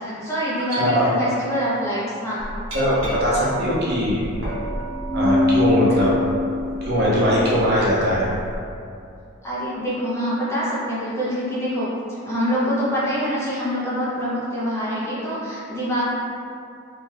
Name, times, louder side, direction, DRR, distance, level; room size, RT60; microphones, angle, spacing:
voice 1, 0.0-2.4 9.4-16.0, equal, 15° left, -9 dB, 0.5 m, -25 dB
voice 2, 0.7-1.1 2.7-4.2 5.1-6.1 6.8-8.3, equal, 50° right, -7 dB, 0.6 m, -20 dB
Glass, 2.4-8.6, left 2 dB, 75° right, 0.9 m, -25 dB
2.6 x 2.2 x 3.2 m, 2.5 s
head